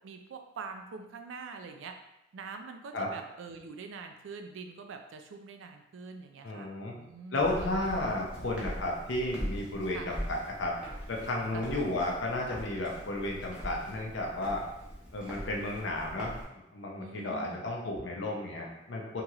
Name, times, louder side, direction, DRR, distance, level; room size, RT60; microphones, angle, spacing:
voice 1, 0.0-1.9 2.3-7.4 9.9-10.1 11.5-11.9 17.0-17.7, right 5 dB, 75° right, 5 dB, 0.4 m, -44 dB
voice 2, 6.4-6.9 7.3-10.8 11.1-14.6 15.1-16.4 16.7-19.2, left 2 dB, 65° left, -1 dB, 0.6 m, -33 dB
Walk footsteps, 7.4-16.4, equal, 5° right, 0.6 m, -42 dB
2.9 x 2.8 x 2.4 m, 0.88 s
head